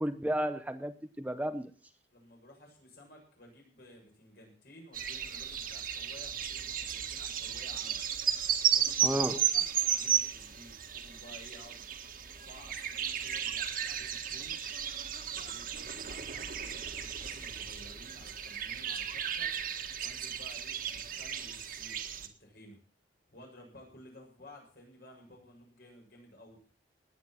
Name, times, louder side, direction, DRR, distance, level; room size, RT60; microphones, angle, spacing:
voice 1, 0.0-1.7 9.0-9.4, right 1 dB, 10° right, 9 dB, 0.7 m, -32 dB
voice 2, 2.1-8.0 8.6-11.9 12.4-14.6 15.1-19.5 20.0-22.8 23.3-26.6, left 1 dB, 55° left, 1 dB, 7.2 m, -55 dB
sound 1, 4.9-22.3, right 9 dB, 50° right, 1.8 m, -34 dB
18.5 x 9.6 x 6.0 m, 0.40 s
head